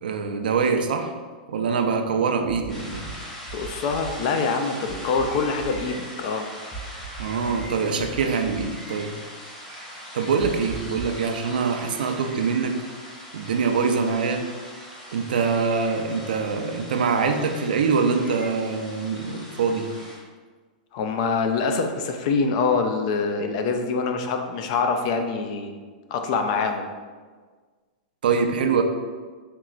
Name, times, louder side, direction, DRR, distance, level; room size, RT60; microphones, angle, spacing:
voice 1, 0.0-1.1 1.5-3.1 7.2-9.1 10.1-12.8 13.3-14.4 15.1-19.9 28.2-28.8, right 5 dB, 80° right, 5 dB, 0.4 m, -24 dB
sound 1, 2.5-3.1 3.5-4.1 4.9-5.8 6.7-7.7 8.0-8.6 10.4-11.2, right 6 dB, 15° right, 0.7 m, -38 dB
sound 2, 2.7-20.2, equal, 10° left, 1.1 m, -41 dB
voice 2, 3.5-6.5 20.9-25.7 26.1-26.9, left 4 dB, 45° left, 5 dB, 0.4 m, -25 dB
4.5 x 2.9 x 2.4 m, 1.5 s
hypercardioid pair, 145°, 5 cm